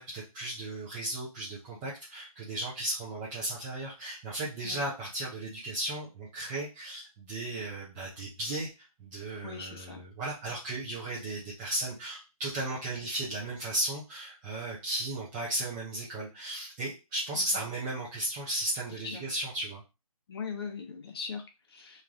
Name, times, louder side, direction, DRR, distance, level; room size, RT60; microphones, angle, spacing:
voice 1, 0.0-19.8, right 1 dB, 10° right, -6 dB, 0.4 m, -35 dB
voice 2, 9.4-10.0 17.3-17.6 19.0-19.3 20.3-22.0, left 5 dB, 40° left, 4 dB, 0.8 m, -40 dB
3.2 x 2.5 x 3.5 m, 0.28 s
hypercardioid pair, 155°, 19 cm